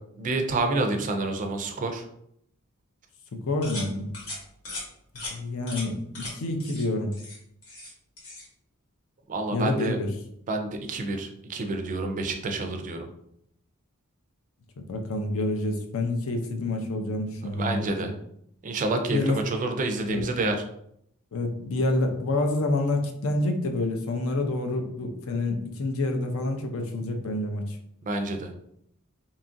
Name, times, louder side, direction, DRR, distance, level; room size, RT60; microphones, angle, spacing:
voice 1, 0.2-2.0 9.3-10.0 10.5-13.1 17.6-18.1 18.6-20.6 28.0-28.5, right 2 dB, 35° right, 5 dB, 0.3 m, -28 dB
voice 2, 3.3-4.1 5.3-7.1 9.5-10.1 14.8-18.1 19.1-19.4 20.1-20.2 21.3-27.8, left 2 dB, 70° left, 4 dB, 0.5 m, -28 dB
sound 1, 3.6-3.9 4.1-4.4 4.6-4.8 5.2-5.3 5.7-5.9 6.1-6.3 6.6-6.8 7.1-7.9 8.2-8.5, left 2 dB, 85° left, 1.2 m, -37 dB
2.8 x 2.4 x 2.5 m, 0.72 s
head